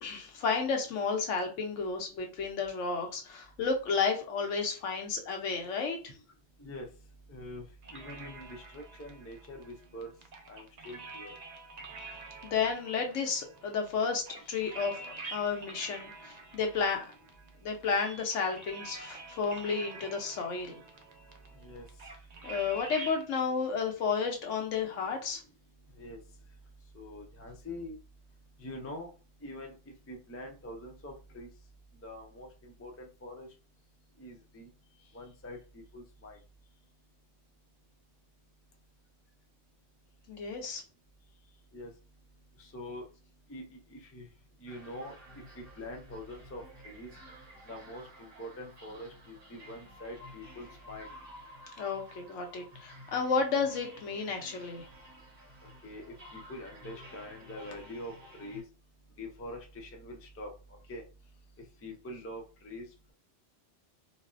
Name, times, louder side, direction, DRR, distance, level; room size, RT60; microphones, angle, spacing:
voice 1, 0.0-6.1 12.0-12.1 12.4-17.1 17.6-20.8 22.4-25.4 40.3-40.8 51.8-54.8, left 5 dB, 90° left, 3 dB, 1.1 m, -32 dB
voice 2, 7.3-7.6 7.9-10.1 10.5-11.3 21.6-21.9 26.0-26.2 26.9-28.0 28.6-29.1 29.4-31.5 32.0-33.5 34.2-34.7 35.1-36.4 41.7-41.9 42.6-43.1 43.5-44.3 44.6-45.1 45.6-47.1 47.7-51.1 55.8-58.1 58.4-58.6 59.2-60.5 60.9-61.0 61.8-62.8, left 1 dB, 25° left, 2 dB, 0.3 m, -44 dB
sound 1, 7.8-23.2, right 3 dB, 55° right, 0.5 m, -47 dB
sound 2, 44.7-58.6, equal, 90° right, 1.9 m, -52 dB
4.0 x 2.0 x 2.5 m, 0.33 s
omnidirectional pair, 1.2 m